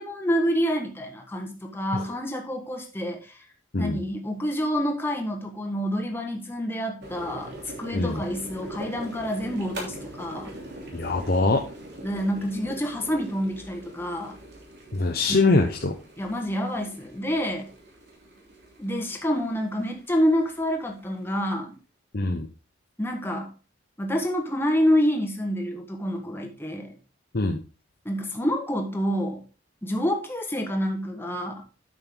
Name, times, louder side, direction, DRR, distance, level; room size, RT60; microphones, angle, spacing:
voice 1, 0.0-3.4 3.8-10.5 12.0-14.3 15.3-15.6 16.2-17.7 18.8-21.8 23.0-23.5 24.0-27.0 28.0-29.4 29.8-31.6, equal, 10° left, 2 dB, 1.4 m, -28 dB
sound 1, 7.0-21.5, right 1 dB, 55° right, 3.1 m, -42 dB
voice 2, 7.9-8.2 10.9-11.6 14.9-15.9 22.1-22.5 27.3-27.6, left 3 dB, 50° left, 2 dB, 0.8 m, -23 dB
8.9 x 6.6 x 3.8 m, 0.34 s
head